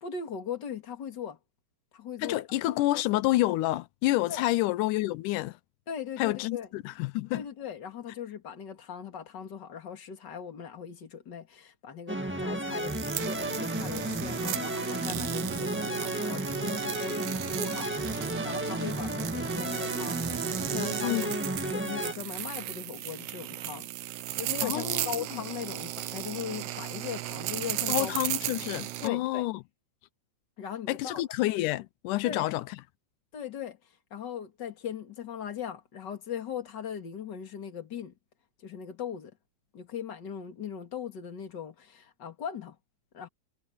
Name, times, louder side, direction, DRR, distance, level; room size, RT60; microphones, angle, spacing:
voice 1, 0.0-1.4 1.9-2.8 4.3-4.4 5.9-6.7 7.3-17.9 18.2-21.3 21.6-23.9 24.3-28.2 29.0-29.5 30.6-31.2 32.2-32.5 33.3-33.8 34.1-38.1 38.6-39.3 39.7-42.8 43.1-43.3, left 8 dB, 35° left, 2.5 m, -39 dB
voice 2, 2.2-5.6 6.2-7.5 21.0-21.4 24.6-25.4 27.9-29.6 30.9-32.6, left 17 dB, 90° left, 2.2 m, -29 dB
sound 1, 12.1-22.1, right 1 dB, 10° right, 0.6 m, -33 dB
sound 2, 12.7-29.1, right 14 dB, 75° right, 1.4 m, -35 dB
omnidirectional pair, 3.5 m